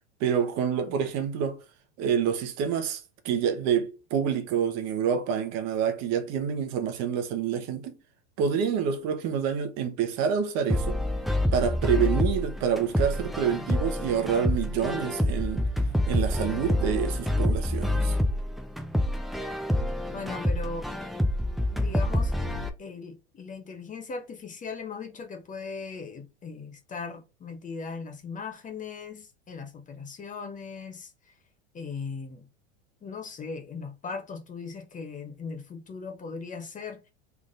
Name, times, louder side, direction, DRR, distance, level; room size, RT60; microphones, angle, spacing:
voice 1, 0.2-1.6 2.0-7.9 8.4-11.0 11.5-15.7 16.0-18.1, right 7 dB, 50° right, 1.0 m, -27 dB
sound 1, 10.7-22.7, left 1 dB, ahead, 0.4 m, -27 dB
voice 2, 20.1-20.9 21.7-22.3 22.8-31.1 31.7-32.5 33.0-37.0, left 4 dB, 25° left, 0.7 m, -38 dB
3.7 x 3.4 x 2.5 m
hypercardioid pair, 95°, 34 cm